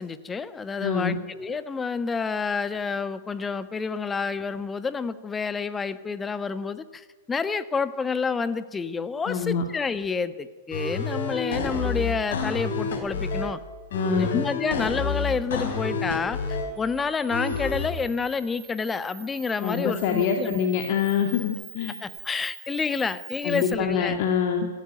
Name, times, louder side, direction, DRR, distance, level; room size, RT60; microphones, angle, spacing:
voice 1, 0.0-13.6 14.1-16.4 16.8-20.6 22.0-24.2, left 5 dB, 15° left, 13 dB, 1.2 m, -29 dB
voice 2, 0.8-1.2 9.3-9.6 13.9-14.4 19.6-22.0 23.4-24.7, left 7 dB, 45° left, 4 dB, 2.4 m, -25 dB
sound 1, 10.7-13.5 13.9-16.7 17.3-17.9, left 4 dB, 60° left, 4.8 m, -29 dB
Camera, 16.8-23.8, right 10 dB, 25° right, 3.2 m, -45 dB
26.0 x 14.0 x 9.3 m, 1.4 s
figure-of-eight pair, 105°, 0 cm